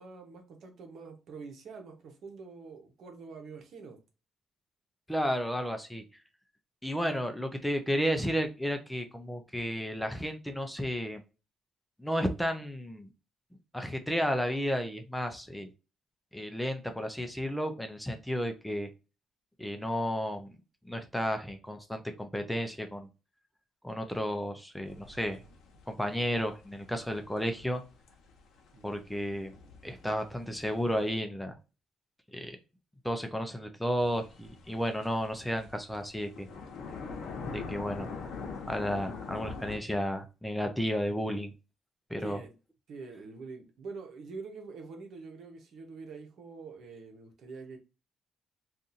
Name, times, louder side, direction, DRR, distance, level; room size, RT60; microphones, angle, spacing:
voice 1, 0.0-4.0 28.7-29.0 42.2-42.5 42.9-47.8, right 4 dB, 70° right, 1.0 m, -45 dB
voice 2, 5.1-6.0 6.8-11.2 12.0-13.1 13.7-15.7 16.3-18.9 19.6-20.5 20.9-23.1 23.8-25.4 25.9-27.8 28.8-29.5 29.8-31.6 32.3-32.6 33.0-36.5 37.5-38.1 38.7-41.5 42.1-42.4, equal, 5° left, 0.6 m, -32 dB
sound 1, 24.8-31.2 34.0-39.8, left 4 dB, 75° left, 0.8 m, -44 dB
2.7 x 2.5 x 3.8 m
cardioid pair, 90°, 0 cm